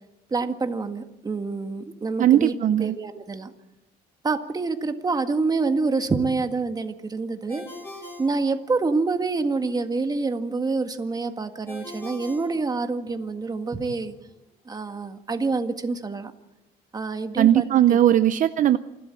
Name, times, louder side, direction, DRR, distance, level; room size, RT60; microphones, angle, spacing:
voice 1, 0.3-2.5 2.8-3.5 4.2-7.7 8.2-14.2 14.7-16.3 16.9-18.0, right 3 dB, 25° right, 7 dB, 1.8 m, -27 dB
voice 2, 2.2-3.0 17.4-18.8, right 11 dB, 50° right, 12 dB, 0.7 m, -18 dB
Ringtone, 7.5-9.2 11.7-13.3, left 1 dB, 15° left, 7.0 m, -42 dB
27.5 x 12.5 x 7.7 m, 0.96 s
cardioid pair, 110°, 17 cm